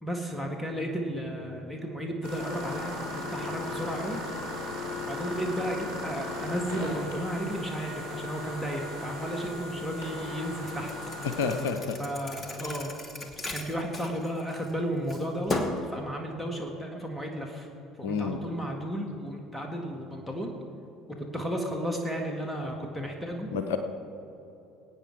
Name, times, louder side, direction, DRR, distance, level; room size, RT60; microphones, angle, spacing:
voice 1, 0.0-4.2 5.1-10.9 12.0-12.9 13.3-17.7 18.0-20.5 21.1-23.5, equal, 10° left, 2 dB, 1.7 m, -33 dB
sound 1, 2.2-11.6, left 2 dB, 80° right, 3.2 m, -37 dB
Thump thud, 10.7-14.7 15.1-15.9, left 2 dB, 30° left, 1.4 m, -36 dB
voice 2, 11.2-12.0 18.0-18.4 23.5-23.8, left 5 dB, 65° left, 8 dB, 0.7 m, -29 dB
21.0 x 9.0 x 4.7 m, 2.9 s
figure-of-eight pair, 60°, 0 cm